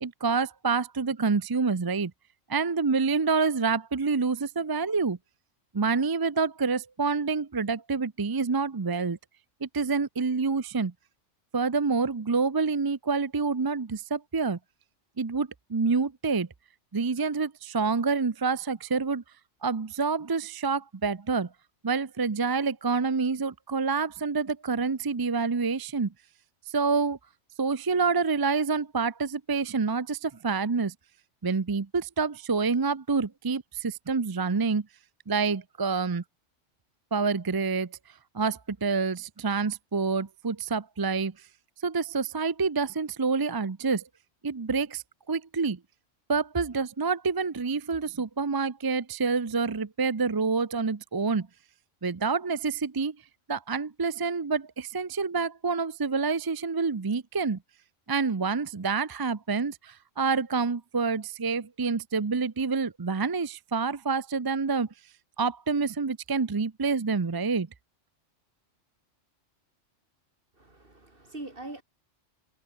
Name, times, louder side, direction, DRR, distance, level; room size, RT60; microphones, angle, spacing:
voice 1, 0.0-2.1 2.5-5.2 5.7-9.2 9.6-10.9 11.5-14.6 15.2-16.5 16.9-19.2 19.6-21.5 21.8-26.1 26.7-27.2 27.6-30.9 31.4-34.9 35.3-36.2 37.1-37.9 38.3-41.3 41.8-44.0 44.4-45.8 46.3-51.5 52.0-53.2 53.5-57.6 58.1-64.9 65.4-67.7, right 4 dB, 30° right, 0.4 m, -27 dB
voice 2, 70.6-71.8, right 2 dB, 45° right, 4.3 m, -42 dB
omnidirectional pair, 1.3 m